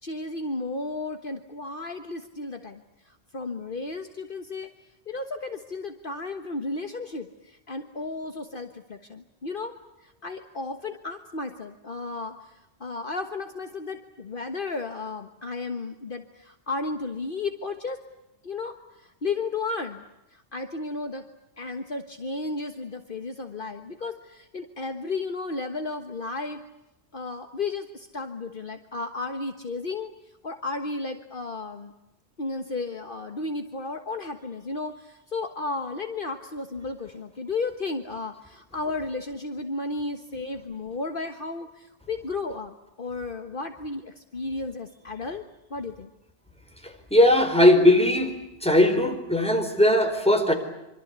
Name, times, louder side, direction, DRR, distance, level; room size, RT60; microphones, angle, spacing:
voice 1, 0.0-4.7 5.1-9.7 10.0-18.0 18.4-20.0 20.3-21.2 21.6-26.6 27.1-30.1 30.4-31.9 32.4-45.4 45.7-46.1, left 3 dB, 50° left, 6 dB, 1.6 m, -33 dB
voice 2, 46.8-48.3 48.6-50.5, left 1 dB, 5° left, 5 dB, 4.4 m, -19 dB
26.0 x 25.5 x 8.2 m, 0.91 s
omnidirectional pair, 1.1 m